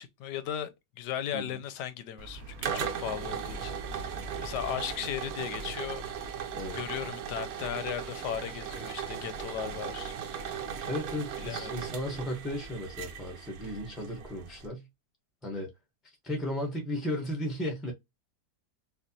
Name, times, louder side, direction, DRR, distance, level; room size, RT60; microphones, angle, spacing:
voice 1, 0.0-6.0 6.7-10.5 11.4-11.8, left 10 dB, 85° left, 1.2 m, -37 dB
sound 1, 2.2-14.7, right 7 dB, 65° right, 1.1 m, -38 dB
voice 2, 10.8-14.9 15.4-15.7 16.2-17.9, left 1 dB, ahead, 0.5 m, -35 dB
4.4 x 2.4 x 2.7 m
omnidirectional pair, 1.8 m